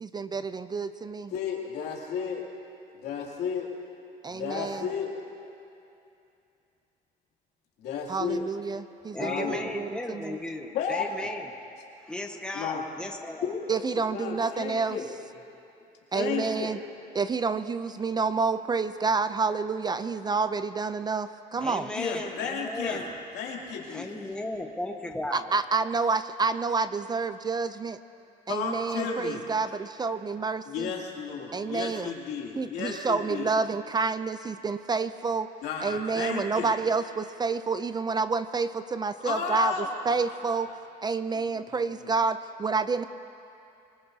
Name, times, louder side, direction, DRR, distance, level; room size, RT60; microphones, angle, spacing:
voice 1, 0.0-1.3 4.2-4.9 8.1-10.4 13.7-15.0 16.1-16.8 17.1-21.9 25.3-28.0 28.5-30.9 31.5-32.1 32.6-35.5 35.8-40.7 41.0-43.0, right 4 dB, 25° right, 12 dB, 0.4 m, -29 dB
voice 2, 1.3-2.4 2.9-3.7 4.3-5.1 7.8-8.4 9.2-9.6 10.7-11.1 12.5-12.8 13.4-15.1 16.1-16.7 21.9-23.0 23.3-24.1 28.5-29.4 30.7-33.5 35.6-36.7 39.2-40.6 41.7-42.1, left 6 dB, 80° left, -2 dB, 2.7 m, -33 dB
voice 3, 9.1-11.5 12.1-13.5 21.6-23.1 23.9-25.4, left 1 dB, 5° left, 2 dB, 1.3 m, -35 dB
25.0 x 19.5 x 2.8 m, 2.7 s
cardioid pair, 110°, 17 cm